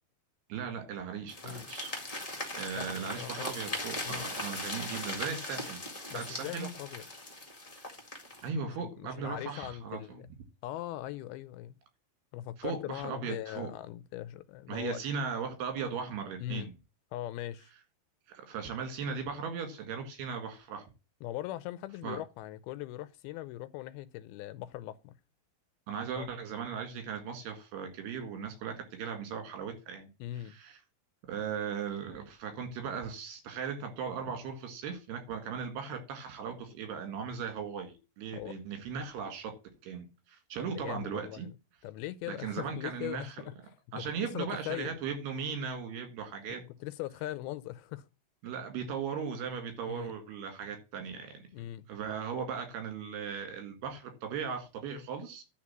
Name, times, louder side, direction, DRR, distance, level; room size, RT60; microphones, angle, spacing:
voice 1, 0.5-2.0 2.5-5.9 6.1-6.7 8.4-10.2 12.6-13.7 14.7-16.7 18.3-20.9 22.0-22.2 25.9-30.1 30.5-30.8 31.3-39.5 39.8-41.5 42.3-43.5 43.9-46.6 48.4-51.4 51.9-55.4, right 6 dB, 80° right, 4.0 m, -38 dB
sound 1, 1.3-8.5, left 2 dB, 30° left, 0.6 m, -39 dB
voice 2, 2.7-3.5 4.0-4.3 6.1-7.0 8.8-10.3 10.6-11.7 12.3-15.0 16.4-16.7 17.1-17.7 21.2-25.1 26.2-26.3 30.2-30.6 38.3-38.6 40.6-41.5 41.8-43.6 44.0-44.9 46.8-48.1 49.9-50.1 51.5-51.9, left 14 dB, 80° left, 2.4 m, -40 dB
11.0 x 4.0 x 7.2 m
omnidirectional pair, 4.6 m